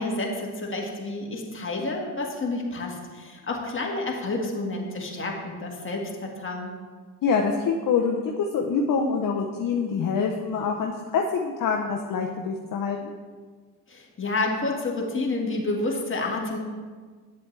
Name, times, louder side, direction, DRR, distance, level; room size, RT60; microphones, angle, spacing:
voice 1, 0.0-6.7 13.9-16.6, left 2 dB, 30° left, -1 dB, 1.8 m, -29 dB
voice 2, 7.2-13.1, left 5 dB, 50° left, 1 dB, 0.8 m, -25 dB
8.2 x 7.6 x 3.3 m, 1.5 s
cardioid pair, 75°, 41 cm